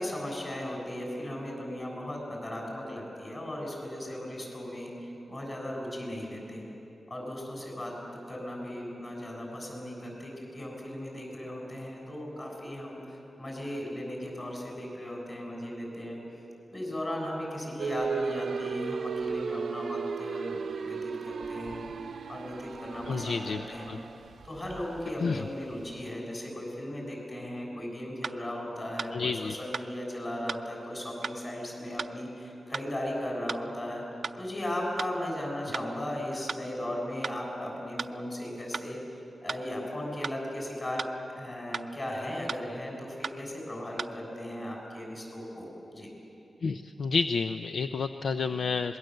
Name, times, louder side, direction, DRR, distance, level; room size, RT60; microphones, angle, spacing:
voice 1, 0.0-6.6 7.1-7.9 8.3-16.2 16.7-21.9 22.3-23.9 24.4-34.0 34.4-39.0 39.4-41.0 41.4-46.1, left 1 dB, 30° left, -1 dB, 7.2 m, -37 dB
sound 1, 17.8-26.1, right 5 dB, 85° right, 0.8 m, -36 dB
voice 2, 23.1-24.0 25.2-25.4 29.1-29.5 46.6-49.0, left 4 dB, 75° left, 8 dB, 0.6 m, -30 dB
sound 2, 27.6-27.7 28.2-28.4 29.0-29.1 29.7-29.9 30.5-30.6 31.2-31.4 32.0-32.1 32.7-32.9 33.5-33.6 34.2-34.4 35.0-35.1 35.7-35.9 36.5-36.6 37.2-37.4 38.0-38.1 38.7-38.9 39.5-39.6 40.2-40.4 41.0-41.1 41.7-41.9 42.5-42.6 43.2-43.4 44.0-44.1, right 4 dB, 50° right, 0.6 m, -35 dB
26.0 x 21.5 x 7.9 m, 2.8 s
wide cardioid pair, 135°, 0 cm